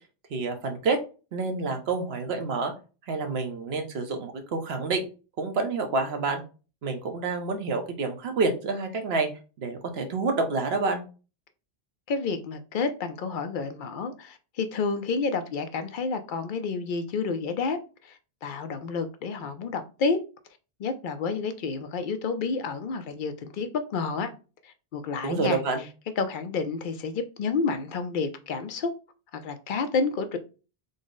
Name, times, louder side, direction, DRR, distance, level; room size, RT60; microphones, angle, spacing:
voice 1, 0.3-1.0 1.3-2.7 3.1-5.0 5.4-6.4 6.8-9.3 9.6-11.0 25.2-25.8, right 3 dB, 80° right, 1.0 m, -28 dB
voice 2, 12.1-20.2 20.8-24.3 24.6-25.6 26.2-28.9 29.3-30.4, left 4 dB, 60° left, 0.6 m, -30 dB
3.9 x 2.0 x 3.7 m
omnidirectional pair, 1.1 m